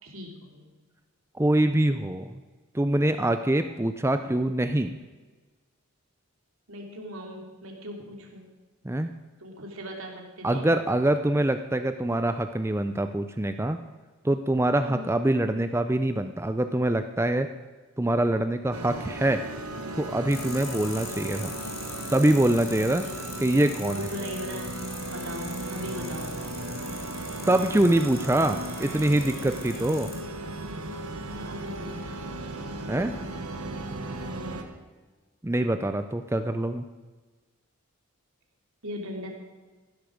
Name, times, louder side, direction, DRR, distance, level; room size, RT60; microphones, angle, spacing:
voice 1, 0.0-0.7 6.7-8.5 9.4-10.7 14.8-15.1 22.9-23.2 23.8-24.7 25.1-26.3 31.4-32.1 34.2-34.7 38.8-39.3, equal, 65° right, 1 dB, 3.0 m, -39 dB
voice 2, 1.3-2.4 2.7-4.9 8.8-9.1 10.4-13.8 14.2-17.5 18.0-19.4 19.9-21.5 22.1-23.0 23.4-24.0 27.5-30.1 32.9-33.2 35.4-36.9, right 1 dB, 10° right, 8 dB, 0.5 m, -24 dB
sound 1, 18.7-34.6, right 2 dB, 85° right, 1.6 m, -36 dB
sound 2, 20.3-30.2, left 5 dB, 45° left, 2.5 m, -42 dB
15.5 x 13.0 x 5.1 m, 1.3 s
head